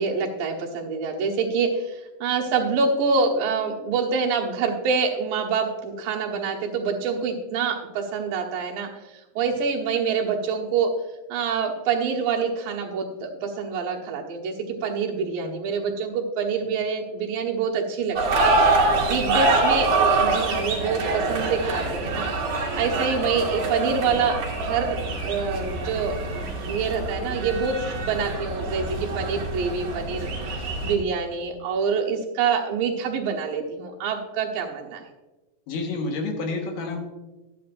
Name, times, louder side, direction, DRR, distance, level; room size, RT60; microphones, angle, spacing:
voice 1, 0.0-8.9 9.4-10.9 11.3-14.5 14.8-22.3 22.8-35.0, right 5 dB, 75° right, -1 dB, 2.9 m, -26 dB
sound 1, 18.2-30.9, right 3 dB, 60° right, 3.2 m, -25 dB
voice 2, 35.7-37.0, left 3 dB, 70° left, 2 dB, 2.9 m, -30 dB
12.0 x 10.5 x 2.5 m, 1.1 s
omnidirectional pair, 4.0 m